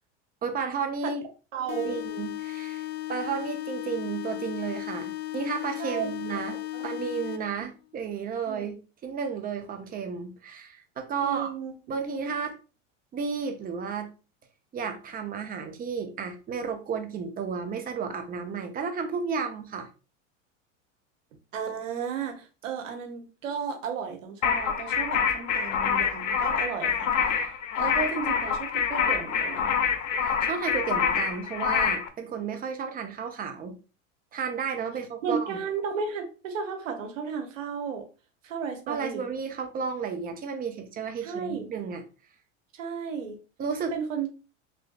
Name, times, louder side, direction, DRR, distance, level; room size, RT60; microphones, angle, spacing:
voice 1, 0.4-1.2 1.7-6.6 6.8-8.8 9.0-11.5 11.9-12.6 13.1-14.1 14.7-19.9 30.2-33.8 34.3-35.6 38.9-42.0 43.6-44.0, right 6 dB, 25° right, 5 dB, 0.6 m, -32 dB
voice 2, 1.5-2.0 5.8-6.1 6.5-6.9 8.5-8.8 11.2-11.7 21.5-27.5 27.7-29.7 35.2-38.1 38.4-39.3 41.2-41.7 42.7-43.4 43.9-44.3, right 6 dB, 90° right, 4 dB, 0.9 m, -34 dB
sound 1, 1.7-7.7, left 17 dB, 30° left, 0.3 m, -35 dB
sound 2, 24.4-32.1, left 7 dB, 85° left, 0.6 m, -26 dB
3.1 x 2.5 x 2.3 m, 0.34 s
hypercardioid pair, 100°, 38 cm